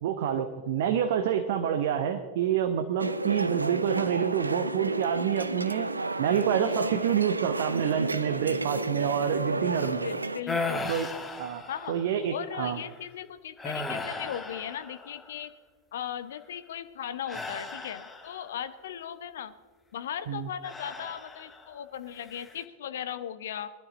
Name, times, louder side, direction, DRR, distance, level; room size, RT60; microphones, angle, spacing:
voice 1, 0.0-5.9 6.2-10.0 10.9-11.1 11.4-12.8 20.3-20.5, right 9 dB, 55° right, 7 dB, 0.9 m, -28 dB
sound 1, 3.0-10.4, right 2 dB, 80° right, 0.5 m, -31 dB
voice 2, 10.0-10.9 11.7-12.0 12.3-15.5 15.9-19.5 19.9-23.7, left 9 dB, 60° left, 12 dB, 0.8 m, -37 dB
sound 2, 10.5-12.2 12.7-13.0 13.6-15.4 17.3-18.6 20.6-21.7 22.2-22.6, left 3 dB, 15° left, 1.4 m, -36 dB
20.5 x 11.5 x 3.9 m, 1.5 s
figure-of-eight pair, 90°, 0 cm